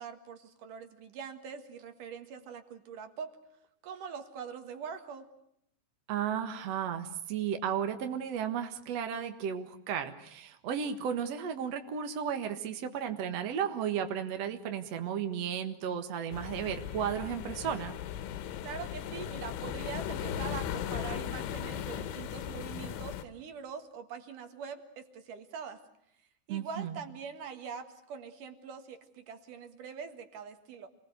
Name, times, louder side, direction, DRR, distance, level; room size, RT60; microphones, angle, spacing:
voice 1, 0.0-3.3 3.8-5.3 18.6-25.8 26.5-30.9, right 6 dB, 55° right, 8 dB, 2.7 m, -43 dB
voice 2, 6.1-17.9 26.5-27.0, right 8 dB, 70° right, 6 dB, 1.5 m, -34 dB
sound 1, 16.3-23.2, left 9 dB, 85° left, 3.7 m, -37 dB
28.5 x 21.0 x 8.1 m, 0.75 s
omnidirectional pair, 5.5 m